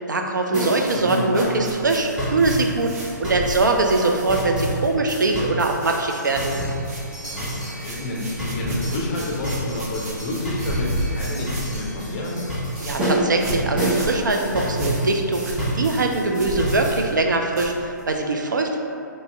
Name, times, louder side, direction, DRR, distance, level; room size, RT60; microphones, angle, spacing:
voice 1, 0.1-6.6 12.8-18.8, right 3 dB, 75° right, 2 dB, 0.4 m, -22 dB
drums straight backbeat ska, 0.5-17.1, equal, 10° right, 0.9 m, -28 dB
Cleaning a coat with a brush, 0.8-5.1 5.4-6.0 6.3-18.2, right 1 dB, 50° right, 0.8 m, -35 dB
voice 2, 7.3-12.4, left 2 dB, 30° left, -3 dB, 0.6 m, -29 dB
3.0 x 2.7 x 3.3 m, 2.5 s
figure-of-eight pair, 130°, 10 cm